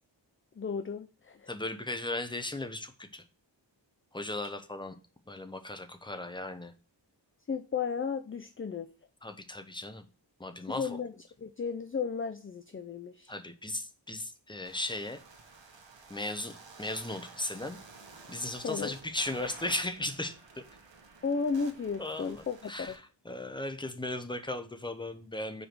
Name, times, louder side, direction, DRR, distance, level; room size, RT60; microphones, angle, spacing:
voice 1, 0.6-1.5 7.5-8.9 10.7-13.3 18.6-18.9 21.2-23.0, left 5 dB, 30° left, 9 dB, 0.4 m, -34 dB
voice 2, 1.5-3.2 4.1-4.9 5.3-6.7 9.2-10.0 10.4-11.0 13.3-15.2 16.1-17.8 18.3-20.6 22.0-25.7, left 2 dB, 10° left, 8 dB, 0.8 m, -37 dB
sound 1, 14.6-23.0, right 4 dB, 70° right, 1.3 m, -52 dB
5.2 x 4.7 x 6.0 m, 0.36 s
wide cardioid pair, 85°, 45 cm